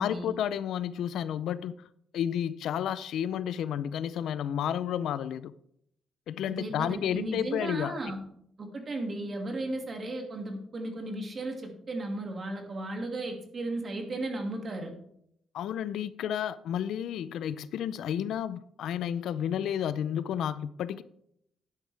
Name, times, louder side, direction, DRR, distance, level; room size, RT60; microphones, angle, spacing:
voice 1, 0.0-1.9 2.1-5.5 6.3-8.0 15.5-21.0, left 9 dB, 80° left, 0.5 m, -31 dB
voice 2, 6.5-8.2 8.6-14.9, right 2 dB, 35° right, 2.2 m, -35 dB
12.0 x 9.5 x 3.4 m
cardioid pair, 140°, 0 cm